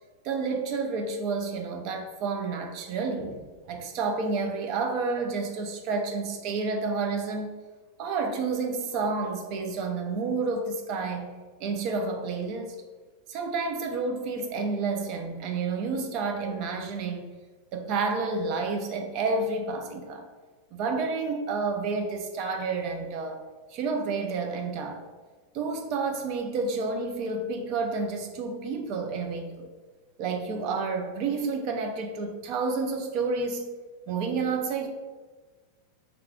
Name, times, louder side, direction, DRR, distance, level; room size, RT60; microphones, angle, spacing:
voice 1, 0.2-7.5 8.0-11.3 11.6-12.7 13.3-17.3 17.7-20.3 20.7-23.4 23.7-25.0 25.5-29.7 30.2-33.7 34.1-34.9, right 4 dB, 40° right, 4 dB, 0.3 m, -30 dB
2.3 x 2.3 x 3.5 m, 1.4 s
supercardioid pair, 155°, 0 cm